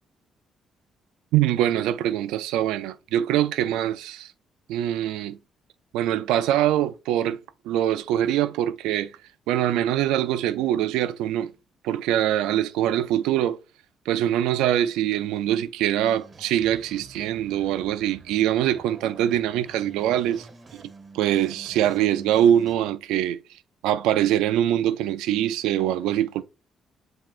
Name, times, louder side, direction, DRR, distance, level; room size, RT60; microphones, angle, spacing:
voice 1, 1.3-4.3 4.7-5.4 5.9-7.4 7.6-9.1 9.5-11.5 11.8-13.6 14.1-20.5 21.1-23.4 23.8-26.4, right 11 dB, 90° right, 0.3 m, -23 dB
sound 1, 16.0-22.7, right 3 dB, 40° right, 1.1 m, -48 dB
7.6 x 2.8 x 2.4 m
supercardioid pair, 75°, 0 cm